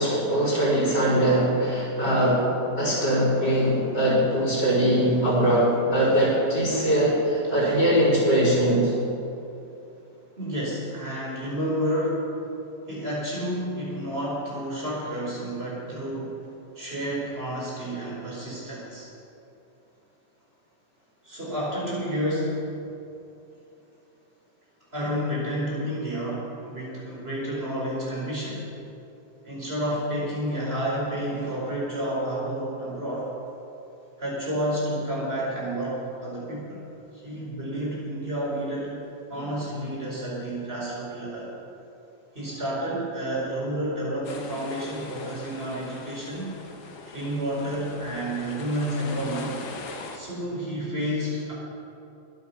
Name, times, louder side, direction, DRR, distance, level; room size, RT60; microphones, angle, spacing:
voice 1, 0.0-8.9, right 1 dB, 60° left, -6 dB, 4.7 m, -22 dB
voice 2, 10.4-12.3 12.9-16.4 16.7-19.1 21.2-22.6 24.9-28.6 29.4-33.3 34.2-36.8 37.1-38.9 39.3-41.5 42.3-46.6 47.1-49.6 50.1-51.5, equal, 30° right, -6 dB, 5.1 m, -30 dB
sound 1, 44.2-50.2, left 4 dB, 80° left, 2.1 m, -41 dB
22.0 x 9.2 x 5.9 m, 2.8 s
omnidirectional pair, 2.1 m